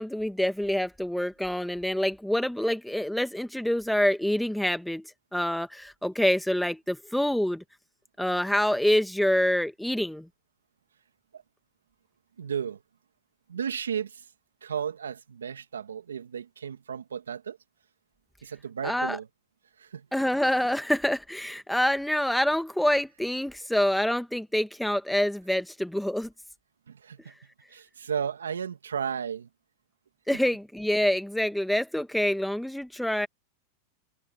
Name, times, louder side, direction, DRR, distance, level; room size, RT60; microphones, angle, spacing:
voice 1, 0.0-7.6 8.2-10.3 18.8-19.2 20.1-26.3 30.3-33.3, left 1 dB, ahead, 1.6 m, -26 dB
voice 2, 12.4-12.8 13.5-14.3 14.6-17.6 18.4-19.3 19.8-20.1 26.9-27.3 27.7-29.5, right 7 dB, 90° right, 2.1 m, -34 dB
hypercardioid pair, 100°, 0 cm